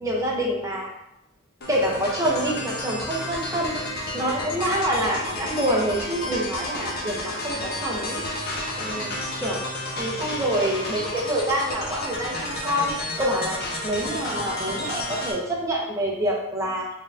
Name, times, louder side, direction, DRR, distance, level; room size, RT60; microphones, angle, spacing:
voice 1, 0.0-0.9 1.7-3.7 4.1-9.1 9.4-9.6 9.9-13.6 13.8-16.9, right 1 dB, 15° right, -3 dB, 0.6 m, -26 dB
sound 1, 1.6-15.3, left 1 dB, 50° left, 0.8 m, -31 dB
4.3 x 3.5 x 2.5 m, 0.86 s
head